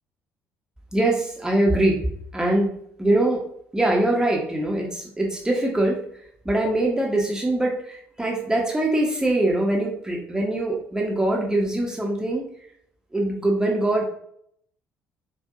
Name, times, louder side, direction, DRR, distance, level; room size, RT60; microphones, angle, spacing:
voice 1, 0.9-2.1 2.3-3.4 3.7-6.0 6.4-12.4 13.1-14.1, right 1 dB, 10° right, -1 dB, 1.1 m, -23 dB
5.3 x 2.7 x 3.7 m, 0.69 s
figure-of-eight pair, 50°, 7 cm